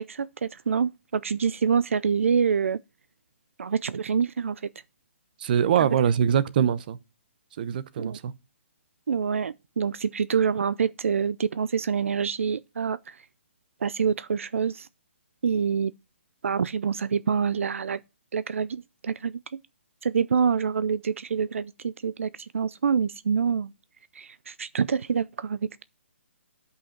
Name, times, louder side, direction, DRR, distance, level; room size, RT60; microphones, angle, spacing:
voice 1, 0.0-2.8 3.6-4.6 5.8-5.9 8.0-8.2 9.1-13.2 13.8-14.9 15.4-15.9 16.4-18.0 18.3-19.4 20.0-23.7 24.1-25.7, right 6 dB, 80° right, 0.5 m, -26 dB
voice 2, 5.4-7.0 7.6-8.3, right 8 dB, 40° right, 0.8 m, -23 dB
9.9 x 5.6 x 5.8 m
hypercardioid pair, 160°, 7 cm